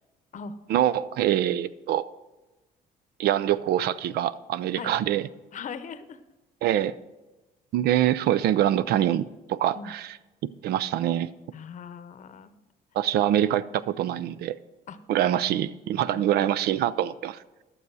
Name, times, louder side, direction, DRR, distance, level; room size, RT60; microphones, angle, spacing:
voice 1, 0.7-2.0 3.2-5.2 6.6-6.9 7.7-10.1 10.6-11.3 12.9-14.5 15.1-17.4, right 11 dB, 70° right, 18 dB, 0.5 m, -24 dB
voice 2, 5.5-6.2 9.7-9.9 11.5-12.5 14.9-15.0 16.1-16.2, left 6 dB, 50° left, 12 dB, 0.8 m, -39 dB
12.0 x 6.9 x 4.8 m, 1.1 s
cardioid pair, 110°, 17 cm